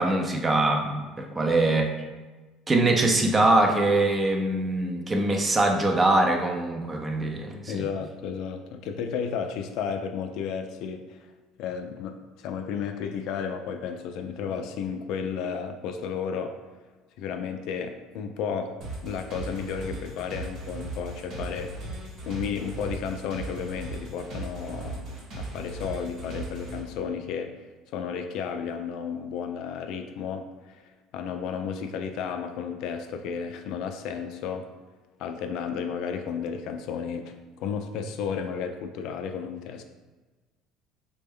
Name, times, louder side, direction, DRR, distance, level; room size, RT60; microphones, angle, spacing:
voice 1, 0.0-1.9 2.7-7.9, right 2 dB, 25° right, 2 dB, 0.5 m, -23 dB
voice 2, 7.7-11.3 11.6-16.6 17.2-21.8 22.3-27.5 27.9-34.7 35.2-39.8, left 6 dB, 70° left, 7 dB, 0.3 m, -33 dB
full loop, 18.8-26.8, right 2 dB, 60° right, 1.0 m, -37 dB
3.3 x 2.1 x 3.5 m, 1.2 s
supercardioid pair, 105°, 0 cm